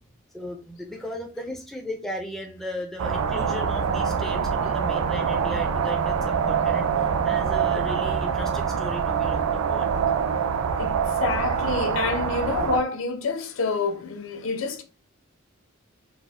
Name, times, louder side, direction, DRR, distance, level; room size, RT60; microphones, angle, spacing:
voice 1, 0.3-9.9, left 1 dB, ahead, 0.3 m, -36 dB
sound 1, 3.0-12.8, right 6 dB, 75° right, 0.3 m, -25 dB
voice 2, 10.8-14.8, left 4 dB, 65° left, 0.5 m, -28 dB
4.1 x 2.0 x 2.2 m
head